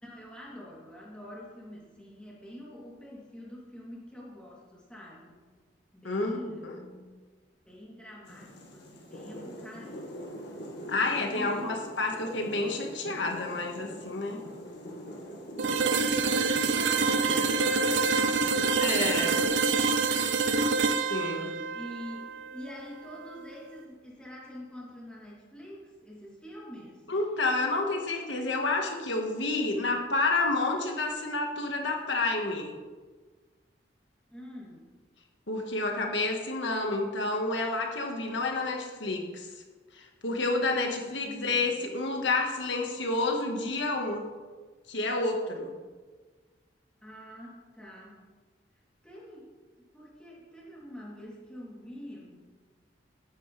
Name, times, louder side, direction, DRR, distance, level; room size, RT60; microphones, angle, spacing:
voice 1, 0.0-5.4 5.9-7.1 7.6-10.6 11.3-11.7 16.7-19.9 21.7-27.1 34.3-34.8 41.0-41.7 47.0-48.3 49.0-49.5 49.8-52.4, equal, 5° left, -6 dB, 3.3 m, -46 dB
voice 2, 6.0-6.7 10.9-14.4 18.8-19.4 20.1-20.3 21.1-21.5 27.1-32.7 35.5-39.5 39.9-44.3 44.9-45.7, left 2 dB, 80° left, 2 dB, 1.7 m, -29 dB
sound 1, 8.3-19.5, equal, 65° left, 2.1 m, -43 dB
sound 2, 15.6-23.4, right 4 dB, 75° right, 0.7 m, -27 dB
14.0 x 10.0 x 3.5 m, 1.4 s
head